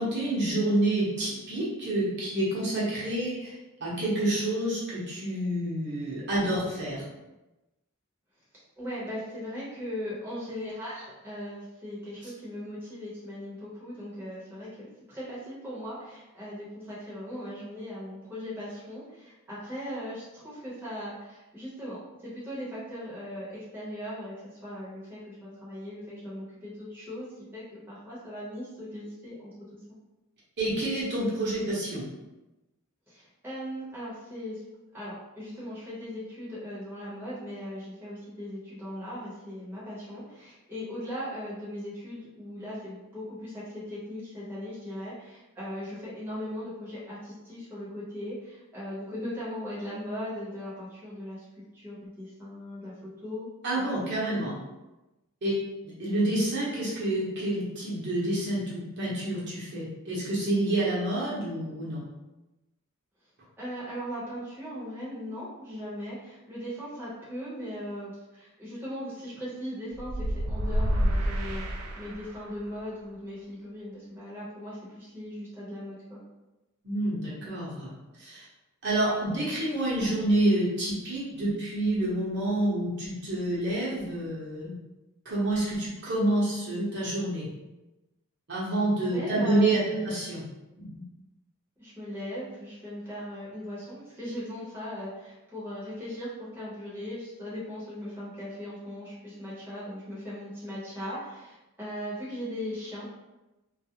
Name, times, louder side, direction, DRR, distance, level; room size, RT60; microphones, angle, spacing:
voice 1, 0.0-3.5 3.8-7.0 30.6-32.1 53.6-54.6 55.4-55.6 55.8-62.0 76.8-78.4 78.8-84.8 85.2-87.5 88.5-90.4 90.8-91.0, right 1 dB, 50° right, -7 dB, 0.8 m, -28 dB
voice 2, 8.8-27.3 27.5-29.8 33.1-34.6 34.9-51.5 51.7-52.9 53.2-53.5 53.7-54.1 63.6-71.7 72.0-76.2 89.1-90.1 91.8-103.1, equal, 10° right, -9 dB, 0.8 m, -38 dB
sound 1, 69.9-72.6, equal, 70° right, 0.3 m, -28 dB
2.3 x 2.0 x 2.8 m, 1.0 s
head